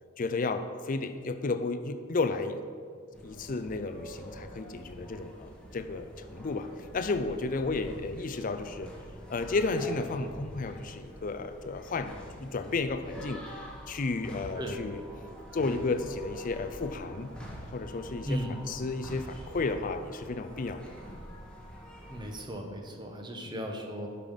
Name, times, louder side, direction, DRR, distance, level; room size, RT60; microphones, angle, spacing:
voice 1, 0.2-2.6 3.2-8.9 9.3-15.0 15.5-17.3 17.7-18.4 18.7-20.8 23.5-23.7, left 3 dB, 40° left, 9 dB, 0.5 m, -33 dB
sound 1, 3.1-22.4, equal, 5° left, 1.3 m, -46 dB
voice 2, 18.2-18.6 22.1-24.1, equal, 20° right, 2 dB, 1.0 m, -36 dB
11.0 x 5.7 x 5.3 m, 2.1 s
head